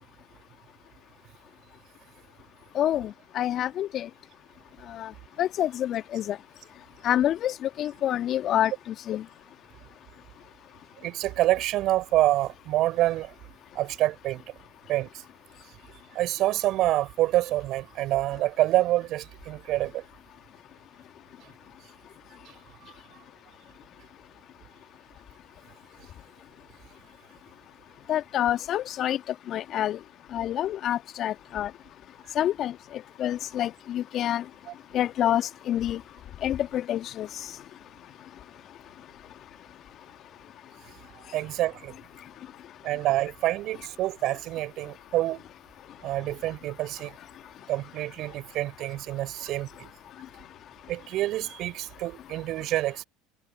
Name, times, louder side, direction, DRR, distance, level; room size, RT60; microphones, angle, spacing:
voice 1, 2.7-4.1 4.9-5.1 5.4-6.4 7.0-8.7 9.1-9.2 28.1-29.2 29.5-30.0 30.3-31.7 32.3-32.7 33.2-34.4 34.9-36.0 36.4-37.3, left 11 dB, 45° left, 1.6 m, -27 dB
voice 2, 11.0-13.3 13.7-14.4 14.9-15.2 16.1-20.0 34.7-34.8 40.9-41.9 42.8-45.4 46.0-47.2 47.7-49.9 50.9-53.0, right 15 dB, 50° right, 5.9 m, -27 dB
hypercardioid pair, 70°, 0 cm